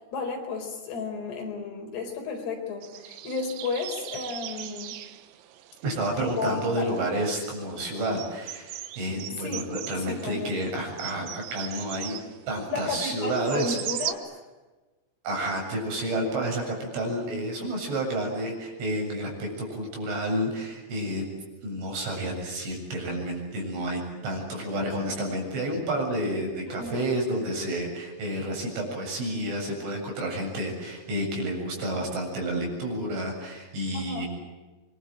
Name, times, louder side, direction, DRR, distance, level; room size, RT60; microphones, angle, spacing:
voice 1, 0.1-4.9 6.2-6.9 9.4-9.7 10.0-10.6 12.7-14.2 26.7-27.1 33.9-34.3, left 4 dB, 55° left, 3 dB, 6.2 m, -33 dB
sound 1, 2.8-14.1, right 12 dB, 90° right, 4.1 m, -40 dB
voice 2, 5.8-12.2 12.5-13.8 15.2-21.3 21.6-34.3, right 1 dB, 65° right, 1 dB, 9.9 m, -30 dB
27.5 x 23.5 x 9.0 m, 1.2 s
omnidirectional pair, 6.0 m